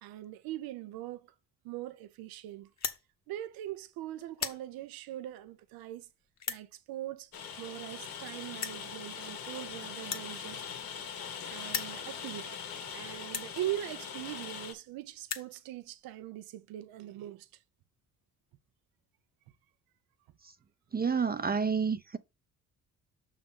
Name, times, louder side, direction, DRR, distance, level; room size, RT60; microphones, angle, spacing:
voice 1, 0.0-1.3 1.6-2.7 3.3-6.1 6.5-7.3 7.6-10.6 11.5-12.6 12.9-17.5, right 14 dB, 90° right, 0.8 m, -41 dB
sound 1, 2.7-3.0 3.7-3.9 4.2-4.6 5.4-5.5 6.4-6.6 7.7-7.8 8.0-8.1 8.6-8.8 10.0-11.3 11.6-12.0 12.7-12.8 13.3-13.5 14.4-14.5 14.7-14.8 15.1-15.5, left 7 dB, 50° left, 1.3 m, -37 dB
Rain, 7.3-14.7, left 7 dB, 85° left, 1.8 m, -42 dB
voice 2, 20.9-22.2, right 6 dB, 25° right, 0.5 m, -29 dB
6.2 x 3.9 x 5.5 m
supercardioid pair, 70°, 35 cm